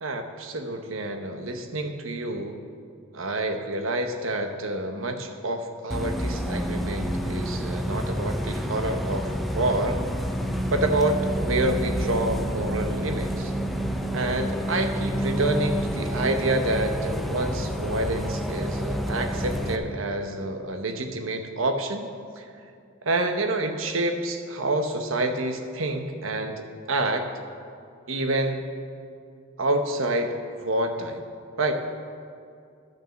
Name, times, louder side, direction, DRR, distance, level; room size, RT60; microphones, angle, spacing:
voice 1, 0.0-2.6 3.1-10.0 10.7-13.5 14.1-22.1 22.4-22.5 23.0-27.3 28.1-28.7 29.6-30.3 30.6-31.2 31.6-31.7, right 2 dB, 90° right, 6 dB, 1.0 m, -28 dB
Bus, 5.9-19.8, equal, ahead, 0.6 m, -28 dB
12.0 x 6.1 x 7.6 m, 2.3 s
head